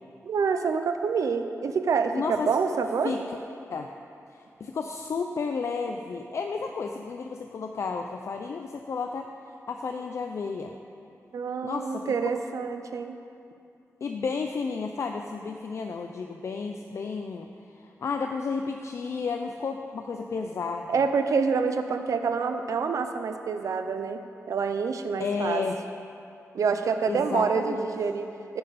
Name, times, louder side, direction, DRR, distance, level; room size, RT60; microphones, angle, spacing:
voice 1, 0.2-3.2 11.3-13.2 20.9-24.2 24.5-25.6 26.5-28.6, right 5 dB, 80° right, 7 dB, 0.7 m, -27 dB
voice 2, 2.1-2.6 3.0-3.2 3.7-3.9 4.3-10.7 11.6-12.1 14.0-17.5 17.7-21.0 25.2-25.8 27.1-27.9, left 5 dB, 55° left, 4 dB, 0.5 m, -32 dB
15.0 x 9.6 x 4.2 m, 2.7 s
wide cardioid pair, 165°, 6 cm